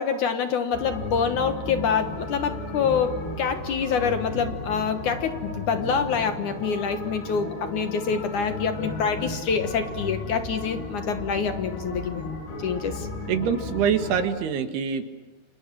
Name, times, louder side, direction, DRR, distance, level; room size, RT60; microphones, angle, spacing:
voice 1, 0.0-12.3 12.6-13.1, left 6 dB, 60° left, 8 dB, 2.4 m, -26 dB
sound 1, 0.7-14.2, left 2 dB, 85° left, 7.8 m, -34 dB
voice 2, 13.3-15.0, right 7 dB, 80° right, 7 dB, 3.9 m, -24 dB
29.5 x 27.5 x 6.2 m, 1.2 s
omnidirectional pair, 4.6 m